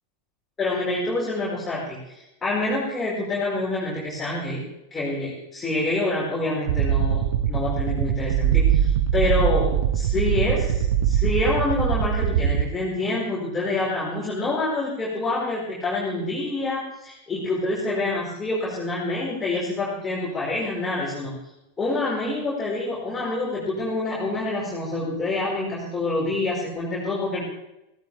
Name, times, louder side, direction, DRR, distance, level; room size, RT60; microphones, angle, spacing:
voice 1, 0.6-4.6 4.9-21.3 21.8-27.4, left 2 dB, 15° left, -7 dB, 5.4 m, -27 dB
sound 1, 6.7-12.6, right 9 dB, 55° right, 1.0 m, -22 dB
18.0 x 17.0 x 3.5 m, 0.89 s
figure-of-eight pair, 90°, 0 cm